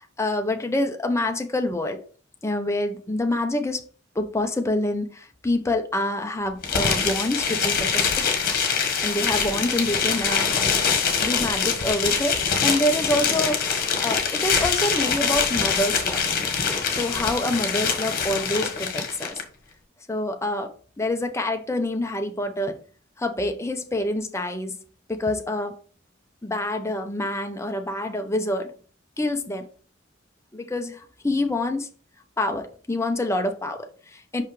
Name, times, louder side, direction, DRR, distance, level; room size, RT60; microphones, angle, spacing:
voice 1, 0.0-2.0 2.4-3.8 4.1-8.3 9.0-10.6 11.2-13.7 14.0-16.2 16.9-19.4 20.1-20.7 21.0-22.8 23.2-24.8 25.1-25.8 26.4-28.7 29.2-29.7 30.5-31.9 32.4-34.4, left 1 dB, 15° left, 0.7 m, -26 dB
sound 1, 6.6-19.4, left 6 dB, 45° left, 1.3 m, -24 dB
5.7 x 5.5 x 3.3 m
head